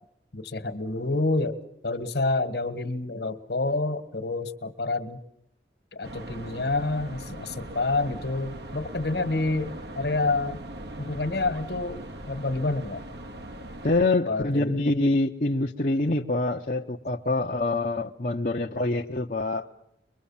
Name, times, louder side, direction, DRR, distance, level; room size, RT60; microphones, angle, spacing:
voice 1, 0.3-5.2 5.9-10.6 11.0-12.0 12.3-13.0 14.3-14.8, left 2 dB, 70° left, 12 dB, 1.7 m, -28 dB
sound 1, 6.0-14.0, right 1 dB, 70° right, 2.0 m, -40 dB
voice 2, 13.8-19.7, left 2 dB, 45° left, 0 dB, 0.9 m, -25 dB
24.0 x 22.5 x 7.2 m, 0.77 s
head